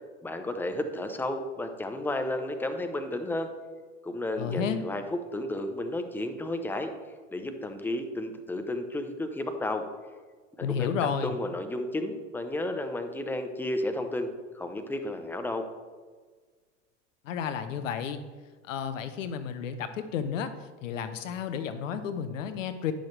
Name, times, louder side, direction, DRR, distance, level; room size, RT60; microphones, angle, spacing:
voice 1, 0.2-3.5 4.0-6.9 7.3-9.8 10.7-14.3 14.5-15.7, left 1 dB, 5° left, 6 dB, 0.8 m, -32 dB
voice 2, 4.4-4.8 10.6-11.3 17.2-18.2 18.6-20.5 20.8-22.9, left 7 dB, 85° left, 11 dB, 0.8 m, -32 dB
10.0 x 6.4 x 3.3 m, 1.5 s
hypercardioid pair, 90°, 37 cm